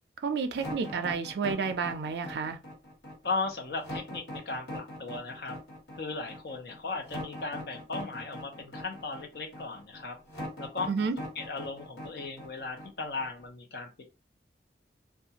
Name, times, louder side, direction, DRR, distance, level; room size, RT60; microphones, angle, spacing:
voice 1, 0.2-2.6 10.9-11.2, right 5 dB, 70° right, 0.4 m, -30 dB
sound 1, 0.5-13.4, left 1 dB, 85° left, 1.4 m, -41 dB
voice 2, 3.2-5.6 6.0-10.2 10.6-10.9 11.4-14.0, left 3 dB, 60° left, 0.6 m, -36 dB
2.4 x 2.3 x 2.8 m
head